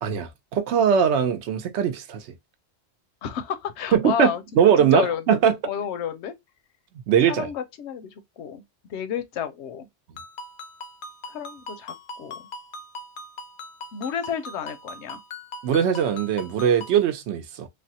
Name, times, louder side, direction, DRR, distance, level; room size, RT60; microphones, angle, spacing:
voice 1, 0.0-2.3 3.9-5.5 7.1-7.5 15.6-17.7, right 8 dB, 75° right, 0.9 m, -21 dB
voice 2, 3.2-5.4 5.6-6.3 7.3-8.6 8.9-9.9 11.3-12.3 13.9-15.2, left 8 dB, 80° left, 0.9 m, -31 dB
Ringtone, 10.2-17.0, left 2 dB, 60° left, 0.6 m, -40 dB
3.3 x 2.1 x 2.7 m
omnidirectional pair, 1.2 m